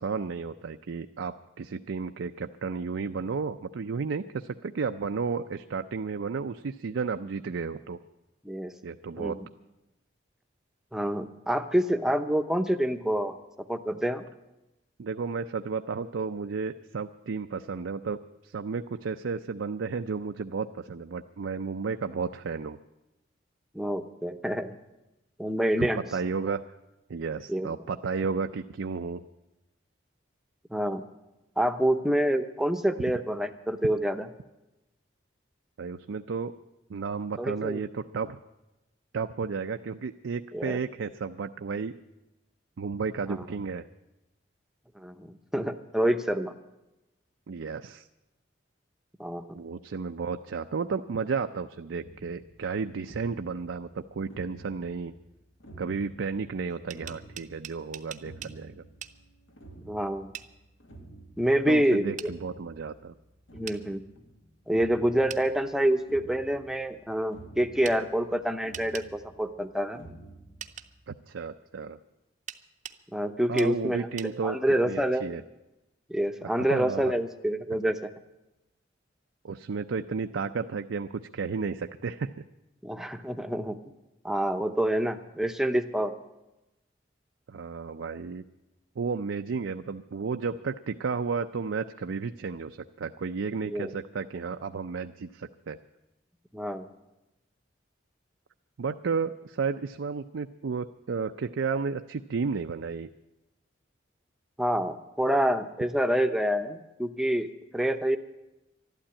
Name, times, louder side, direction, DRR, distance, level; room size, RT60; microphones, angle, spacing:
voice 1, 0.0-8.0 8.8-9.4 15.0-22.8 25.8-26.6 27.1-29.2 35.8-36.5 36.9-38.4 39.1-41.9 42.8-43.9 47.5-48.1 49.5-55.1 55.8-58.8 61.6-63.1 71.1-72.0 73.5-74.6 74.8-75.4 76.4-77.1 79.4-82.3 87.5-88.4 89.0-95.8 98.8-103.1, right 5 dB, 80° right, 7 dB, 0.5 m, -33 dB
voice 2, 9.2-9.5 10.9-13.4 13.7-14.2 23.7-24.7 25.4-26.0 27.5-27.7 30.7-31.0 31.6-34.3 37.4-37.8 40.5-40.8 45.0-46.5 49.2-49.6 59.9-60.3 61.4-62.3 63.5-64.0 64.7-70.1 73.1-75.3 76.1-78.1 82.8-83.8 84.2-86.1 93.7-93.9 96.5-96.9 104.6-107.5 107.7-108.2, right 1 dB, 5° right, 7 dB, 0.7 m, -27 dB
sound 1, 52.0-71.2, right 2 dB, 80° left, 1.7 m, -51 dB
sound 2, 56.7-58.6 59.0-59.2 60.3-60.5 62.2-62.3 63.7-63.8 65.3-65.5 67.8-68.0 68.7-69.1 70.6-70.9 72.5-73.0 73.6-73.7 74.2-74.3, right 9 dB, 40° right, 0.6 m, -41 dB
12.5 x 11.5 x 8.7 m, 0.98 s
head